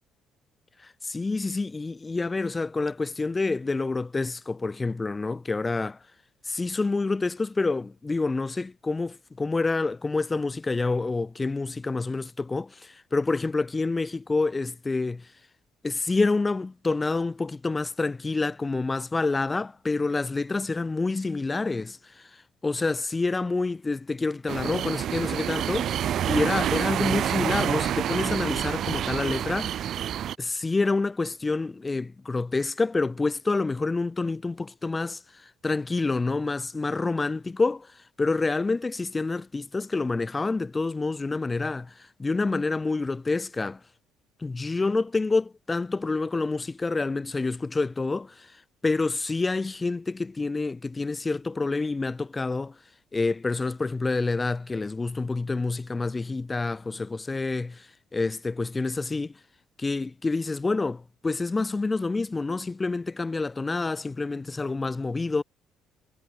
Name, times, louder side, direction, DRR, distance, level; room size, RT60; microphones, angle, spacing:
voice 1, 0.8-6.0 6.5-15.3 15.8-26.0 26.3-29.8 30.4-43.8 44.4-52.8 53.1-59.4 59.8-65.4, left 3 dB, 20° left, 1.4 m, -28 dB
sound 1, 24.5-30.4, right 10 dB, 60° right, 0.9 m, -28 dB
cardioid pair, 95°, 0 cm